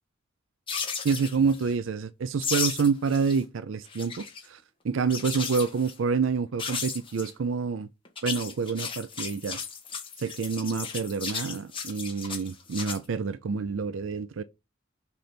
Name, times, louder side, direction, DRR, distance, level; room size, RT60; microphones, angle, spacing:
sound 1, 0.7-1.7 2.4-3.4 3.7-4.4 5.1-5.9 6.6-7.3 8.0-13.0, left 6 dB, 25° left, 1.5 m, -35 dB
voice 1, 1.0-7.9 8.2-9.6 10.2-14.4, right 5 dB, 70° right, 0.4 m, -28 dB
5.9 x 4.0 x 5.1 m
head